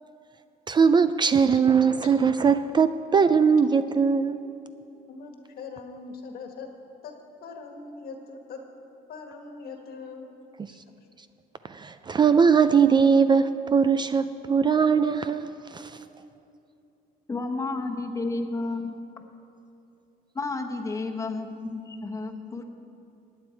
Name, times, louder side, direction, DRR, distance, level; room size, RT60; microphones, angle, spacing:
voice 1, 0.7-4.5 10.6-10.7 11.6-16.0, right 6 dB, 25° right, 11 dB, 0.3 m, -21 dB
voice 2, 5.0-6.7 7.0-8.6 9.1-10.3 10.7-11.1, left 4 dB, 65° left, 4 dB, 1.6 m, -42 dB
voice 3, 17.3-18.9 20.3-22.6, left 3 dB, 20° left, 3 dB, 1.1 m, -31 dB
16.5 x 9.7 x 4.5 m, 2.7 s
cardioid pair, 110°, 17 cm